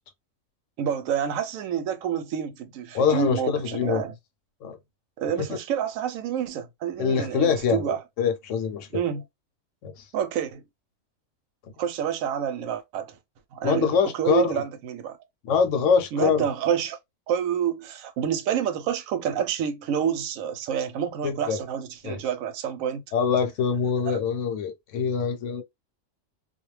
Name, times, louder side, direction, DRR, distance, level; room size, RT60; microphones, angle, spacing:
voice 1, 0.8-4.1 5.2-8.0 8.9-9.2 10.1-10.6 11.8-13.1 13.5-15.2 16.1-17.0 17.3-23.0 24.1-24.2, right 9 dB, 85° right, 1.0 m, -28 dB
voice 2, 2.9-4.0 4.6-4.8 5.5-5.6 7.0-9.0 9.8-10.0 13.6-14.6 15.5-16.5 21.2-21.6 22.0-22.2 23.1-25.6, left 6 dB, 70° left, 0.9 m, -24 dB
2.3 x 2.2 x 3.1 m
omnidirectional pair, 1.4 m